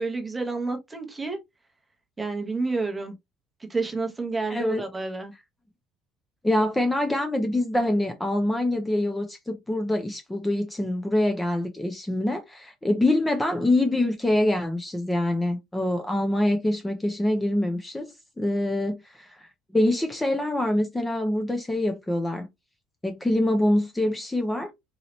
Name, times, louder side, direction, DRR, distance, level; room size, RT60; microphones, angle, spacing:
voice 1, 0.0-1.4 2.2-3.1 3.7-5.3, right 3 dB, 10° right, 0.8 m, -29 dB
voice 2, 4.5-4.8 6.4-22.5 23.0-24.7, left 1 dB, 5° left, 0.4 m, -25 dB
4.0 x 2.8 x 3.0 m
cardioid pair, 170°, 0 cm